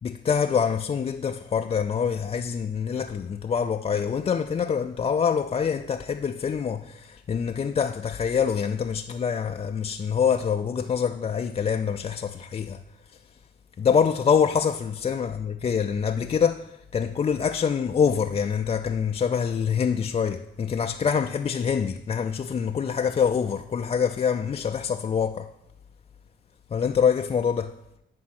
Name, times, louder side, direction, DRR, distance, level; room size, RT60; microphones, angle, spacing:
voice 1, 0.0-12.8 13.8-25.5 26.7-27.8, left 7 dB, 30° left, 0.4 m, -25 dB
10.0 x 4.6 x 5.9 m
cardioid pair, 90°, 20 cm